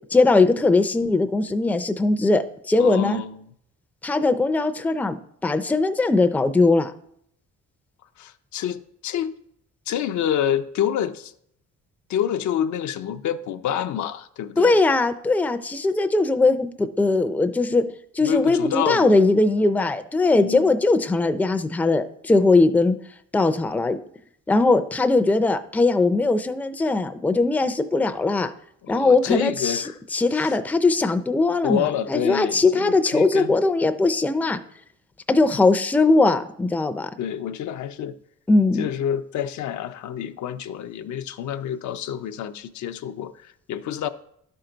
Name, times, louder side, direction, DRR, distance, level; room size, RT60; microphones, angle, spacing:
voice 1, 0.1-3.2 4.0-6.9 14.6-17.8 18.1-23.0 23.3-24.0 24.5-28.5 28.9-29.8 30.1-34.6 35.3-37.1 38.5-38.9, left 3 dB, 5° left, 0.4 m, -20 dB
voice 2, 2.8-3.5 8.2-9.4 9.9-11.3 12.1-14.8 18.2-19.1 20.3-20.7 28.8-30.0 30.3-30.6 31.6-33.5 37.2-38.2 38.8-44.1, left 9 dB, 70° left, 0.5 m, -28 dB
11.0 x 4.5 x 3.9 m
cardioid pair, 90°, 30 cm